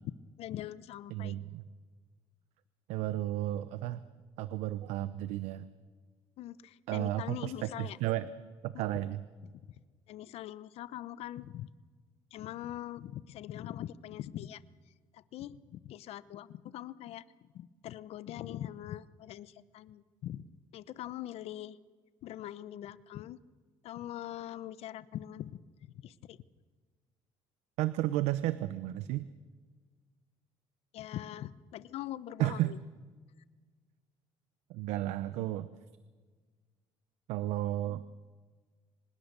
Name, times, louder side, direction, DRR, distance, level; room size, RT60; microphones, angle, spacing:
voice 1, 0.4-1.4 6.4-8.0 9.5-9.6 10.1-11.7 12.3-14.6 15.1-17.2 17.5-20.4 20.7-21.8 22.2-23.4 23.8-26.4 30.9-32.8, left 12 dB, 65° left, 17 dB, 0.8 m, -42 dB
voice 2, 1.1-1.6 2.9-4.0 4.4-5.7 6.9-8.3 8.6-9.2 27.8-29.3 32.4-32.8 34.7-35.7 37.3-38.1, right 14 dB, 80° right, 14 dB, 0.8 m, -33 dB
25.0 x 20.0 x 6.8 m, 1.5 s
supercardioid pair, 85°, 11 cm